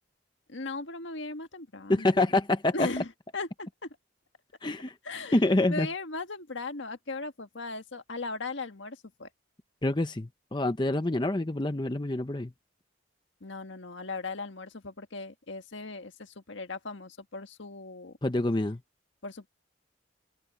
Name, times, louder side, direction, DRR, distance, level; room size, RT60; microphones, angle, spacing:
voice 1, 0.5-2.2 2.7-3.1 3.3-3.9 5.0-5.4 5.7-9.3 13.4-18.1 19.2-19.5, left 3 dB, 75° left, 1.6 m, -38 dB
voice 2, 1.9-2.9 4.6-4.9 5.3-5.9 9.8-12.5 18.2-18.8, left 2 dB, 25° left, 0.7 m, -26 dB
head